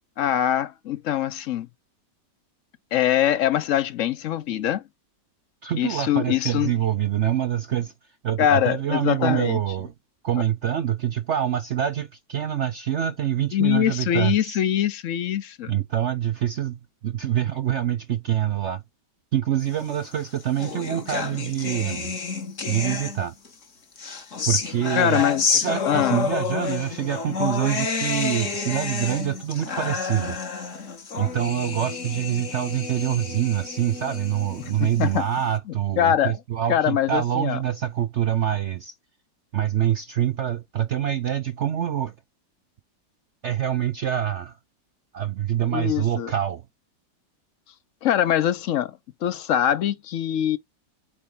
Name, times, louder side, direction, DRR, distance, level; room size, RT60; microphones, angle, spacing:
voice 1, 0.2-1.7 2.9-4.8 5.8-6.7 8.4-9.6 13.5-15.7 25.0-25.4 25.9-26.3 34.6-35.2 36.0-36.4 36.7-37.6 45.7-46.3 48.0-50.6, left 11 dB, 65° left, 0.8 m, -23 dB
voice 2, 5.6-7.9 8.2-9.9 10.2-14.6 15.7-18.8 19.3-22.2 22.7-23.4 24.5-30.4 31.2-38.9 39.5-42.1 43.4-44.6 45.1-46.7, right 10 dB, 70° right, 0.7 m, -25 dB
sound 1, 20.0-23.5 24.0-35.4, left 5 dB, 45° left, 1.7 m, -29 dB
8.6 x 4.2 x 3.8 m
omnidirectional pair, 1.9 m